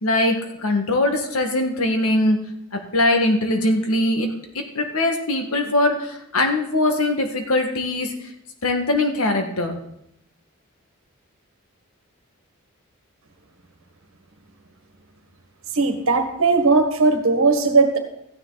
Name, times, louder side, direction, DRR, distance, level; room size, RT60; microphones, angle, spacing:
voice 1, 0.0-2.4 2.7-8.3 8.6-9.8, left 2 dB, 80° left, 4 dB, 1.7 m, -21 dB
voice 2, 15.7-18.0, right 3 dB, 70° right, 6 dB, 1.6 m, -18 dB
14.5 x 9.8 x 4.0 m, 0.77 s
head